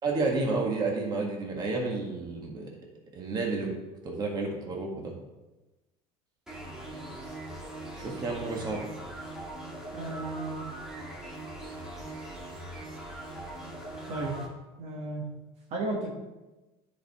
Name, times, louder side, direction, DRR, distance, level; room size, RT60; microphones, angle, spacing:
voice 1, 0.0-2.7 3.1-3.7 4.0-5.1 8.0-8.8, right 3 dB, 30° right, 0 dB, 1.7 m, -30 dB
sound 1, 6.5-14.5, right 1 dB, 5° right, 2.0 m, -41 dB
voice 2, 9.9-10.6 14.1-14.4 14.8-15.3 15.7-16.1, right 2 dB, 55° right, -1 dB, 1.5 m, -33 dB
10.0 x 5.1 x 3.6 m, 1.1 s
supercardioid pair, 125°, 13 cm